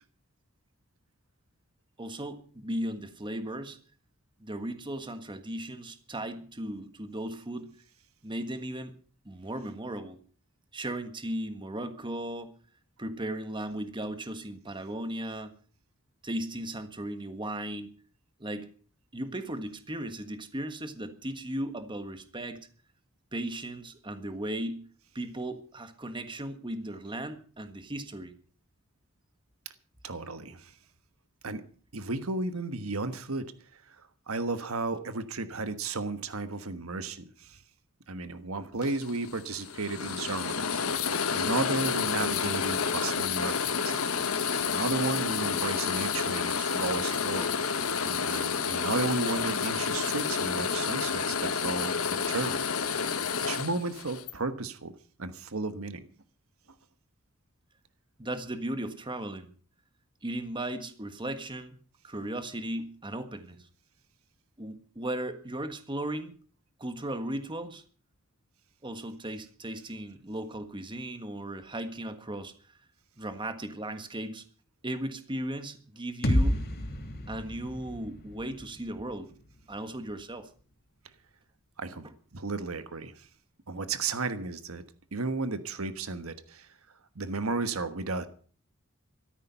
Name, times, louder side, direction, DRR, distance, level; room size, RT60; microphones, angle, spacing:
voice 1, 2.0-3.8 4.4-7.7 8.2-8.9 9.2-10.2 10.7-12.5 13.0-15.5 16.2-17.9 18.4-18.7 19.1-22.6 23.3-24.8 25.1-28.3 58.2-59.5 60.2-61.8 62.0-63.6 64.6-66.3 66.8-67.8 68.8-72.5 73.2-74.4 74.8-76.6 77.3-79.3 79.7-80.5, right 1 dB, 25° right, 8 dB, 1.5 m, -36 dB
voice 2, 30.0-30.7 31.4-31.6 31.9-33.5 33.7-37.6 38.1-44.2 44.6-47.6 48.0-51.9 52.3-52.6 53.4-54.9 55.2-56.1 81.8-83.3 83.7-84.8 85.1-86.7 87.1-88.3, right 3 dB, 80° right, 10 dB, 1.4 m, -34 dB
sound 1, 38.8-54.3, left 6 dB, 85° left, 1.4 m, -30 dB
sound 2, 76.2-80.1, equal, 50° left, 2.9 m, -31 dB
14.5 x 13.5 x 5.6 m, 0.42 s
head